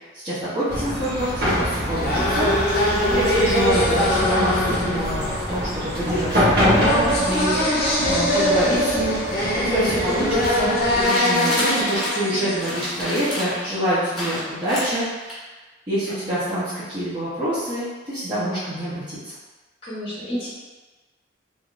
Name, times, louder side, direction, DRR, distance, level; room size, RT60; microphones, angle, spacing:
voice 1, 0.1-9.2 9.6-15.4 15.9-19.3, right 1 dB, 25° right, -15 dB, 0.8 m, -26 dB
sound 1, 0.7-11.0, equal, 60° right, 1.0 m, -26 dB
sound 2, 1.6-13.4, left 1 dB, 55° left, 0.6 m, -23 dB
sound 3, 10.4-12.3 12.6-13.6 14.1-15.3, equal, ahead, 1.4 m, -29 dB
voice 2, 19.8-20.5, equal, 30° left, -9 dB, 0.9 m, -30 dB
3.4 x 2.7 x 2.5 m, 1.3 s
head